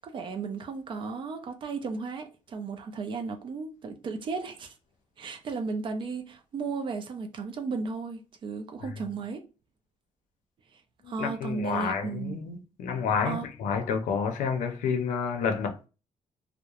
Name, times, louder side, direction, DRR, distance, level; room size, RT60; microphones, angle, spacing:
voice 1, 0.0-4.7 5.2-9.4 10.7-10.8 11.1-12.5 13.2-13.5, right 4 dB, 40° right, 0.4 m, -35 dB
voice 2, 11.0-15.9, left 6 dB, 80° left, 0.6 m, -29 dB
2.9 x 2.1 x 2.3 m
cardioid pair, 170°, 13 cm